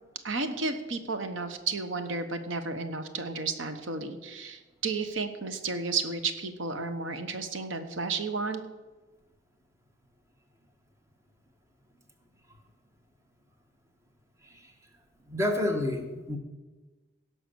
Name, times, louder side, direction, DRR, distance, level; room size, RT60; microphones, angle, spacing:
voice 1, 0.2-8.6, right 4 dB, 90° right, 8 dB, 1.1 m, -32 dB
voice 2, 15.3-16.4, left 1 dB, 15° right, 4 dB, 1.3 m, -29 dB
17.0 x 5.9 x 6.9 m, 1.2 s
head